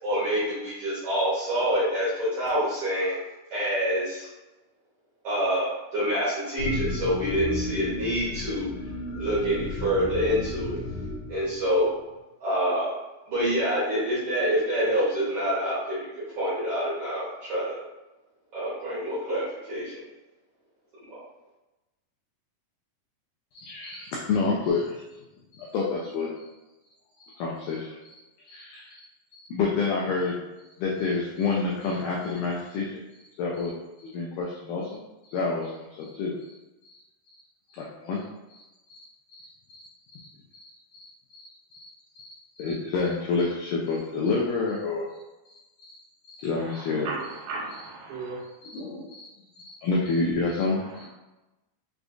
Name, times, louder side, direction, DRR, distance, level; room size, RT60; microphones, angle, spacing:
voice 1, 0.0-3.2 3.5-4.3 5.2-8.7 9.2-10.8 11.3-11.9 12.4-12.9 13.3-16.1 16.4-17.8 18.5-20.0 21.1-21.2, equal, 75° right, -10 dB, 1.3 m, -26 dB
sound 1, 6.6-11.9, left 3 dB, 70° left, 1.8 m, -33 dB
voice 2, 23.5-25.0 25.6-26.3 27.2-28.0 28.5-29.0 29.5-30.4 30.8-32.9 33.4-33.7 34.0-35.0 35.3-36.4 37.7-38.2 38.5-38.6 40.1-40.2 42.6-45.1 46.4-47.1 48.6-49.3 49.6-51.1, left 4 dB, 85° left, -3 dB, 1.8 m, -28 dB
voice 3, 46.6-48.4, right 3 dB, 90° right, -1 dB, 2.7 m, -36 dB
6.4 x 2.3 x 2.5 m, 1.0 s
omnidirectional pair, 4.3 m